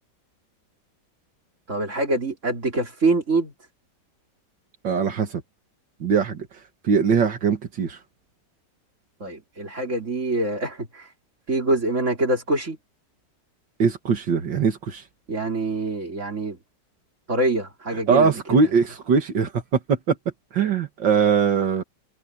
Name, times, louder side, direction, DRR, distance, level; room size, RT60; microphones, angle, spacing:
voice 1, 1.7-3.5 9.2-11.1 11.5-12.8 15.3-16.6 17.3-18.7, right 2 dB, 40° right, 4.4 m, -25 dB
voice 2, 4.8-5.4 6.0-6.5 6.8-8.0 13.8-15.0 18.1-20.2 20.5-21.8, right 5 dB, 80° right, 2.4 m, -21 dB
omnidirectional pair, 1.9 m